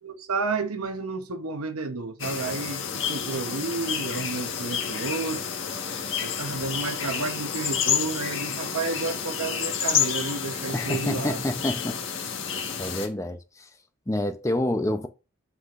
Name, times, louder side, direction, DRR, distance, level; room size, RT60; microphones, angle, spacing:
voice 1, 0.0-5.4 6.2-11.4, right 4 dB, 90° right, 0.9 m, -31 dB
sound 1, 2.2-13.1, left 7 dB, 60° left, 1.4 m, -30 dB
voice 2, 10.7-12.0 12.8-13.7 14.1-15.1, left 1 dB, 15° left, 0.6 m, -28 dB
8.1 x 5.9 x 2.5 m
head